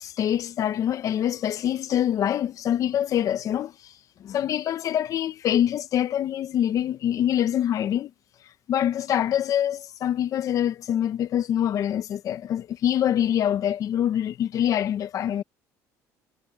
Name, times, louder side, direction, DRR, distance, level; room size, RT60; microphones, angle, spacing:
voice 1, 0.0-8.1 8.7-15.4, left 10 dB, 50° left, 0.9 m, -25 dB
cardioid pair, 115°, 7 cm